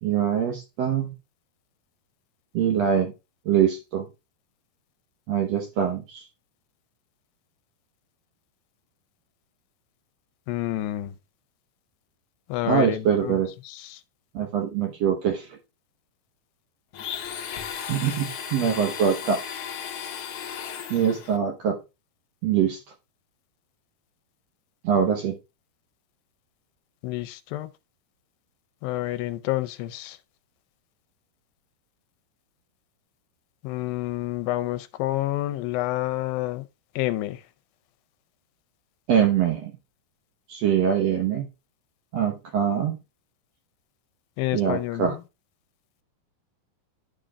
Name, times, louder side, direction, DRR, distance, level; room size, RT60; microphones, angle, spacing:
voice 1, 0.0-1.1 2.5-3.1 3.4-4.1 5.3-6.2 12.6-13.5 14.3-15.6 17.9-19.4 20.9-21.8 22.4-22.8 24.8-25.3 39.1-39.7 40.5-41.4 42.1-43.0 44.5-45.1, right 8 dB, 65° right, 1.6 m, -23 dB
voice 2, 10.5-11.2 12.5-13.4 13.7-14.0 27.0-27.7 28.8-30.2 33.6-36.7 37.0-37.4 44.4-45.2, left 15 dB, 80° left, 2.3 m, -29 dB
Domestic sounds home sounds, 16.9-21.4, left 8 dB, 65° left, 1.5 m, -35 dB
11.5 x 5.1 x 2.3 m
omnidirectional pair, 4.2 m